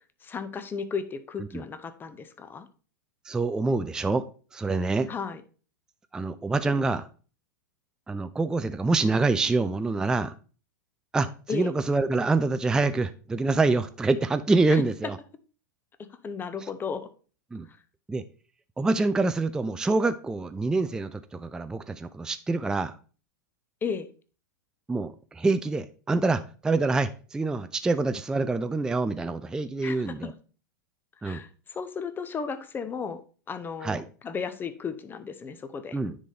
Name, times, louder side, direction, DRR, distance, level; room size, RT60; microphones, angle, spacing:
voice 1, 0.2-2.7 5.1-5.4 11.5-11.7 14.7-14.8 16.2-17.1 23.8-24.1 29.8-30.3 31.2-33.2 33.5-36.0, left 6 dB, 20° left, 12 dB, 0.7 m, -34 dB
voice 2, 3.3-4.3 4.5-5.1 6.1-7.1 8.1-10.3 11.1-15.2 17.5-17.7 18.1-18.2 18.8-22.9 24.9-30.3 31.2-31.4 33.8-34.0 35.9-36.2, right 3 dB, 5° right, 10 dB, 0.3 m, -26 dB
9.7 x 4.1 x 3.3 m, 0.38 s
hypercardioid pair, 100°, 10 cm